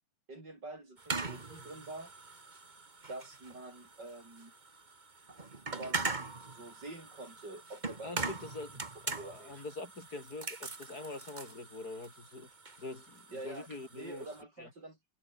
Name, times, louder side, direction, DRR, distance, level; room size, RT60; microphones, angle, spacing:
voice 1, 0.3-2.1 3.1-4.5 5.7-8.1 9.1-9.7 13.3-13.7 13.9-15.0, right 2 dB, 55° right, 7.2 m, -46 dB
sound 1, 1.0-14.4, right 3 dB, 25° right, 1.7 m, -42 dB
voice 2, 8.0-12.5 12.8-14.3 14.6-14.7, left 2 dB, 45° left, 4.5 m, -44 dB
omnidirectional pair, 2.3 m